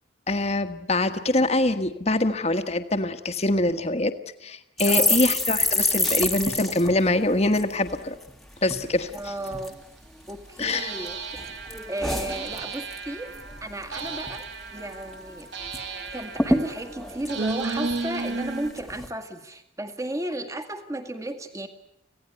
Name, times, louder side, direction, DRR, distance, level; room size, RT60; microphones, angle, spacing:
voice 1, 0.3-4.1 4.4-8.2 8.6-9.1 10.6-10.9, left 2 dB, 35° left, 8 dB, 1.4 m, -24 dB
sound 1, 4.8-8.3 8.6-8.8 9.1-9.7 10.3-11.1 11.4-13.0 13.3-13.6 13.8-14.4 14.8-14.9 15.1-15.8 16.1-16.2 16.4-18.3 18.8-19.1, left 1 dB, ahead, 1.6 m, -27 dB
voice 2, 4.9-5.2 9.1-9.8 10.3-11.4 11.9-13.3 13.6-15.5 16.1-21.7, right 1 dB, 15° right, 7 dB, 1.9 m, -34 dB
sound 2, 9.1-9.2 10.7-18.7, right 3 dB, 70° right, 2.4 m, -34 dB
26.0 x 17.0 x 10.0 m, 0.78 s
head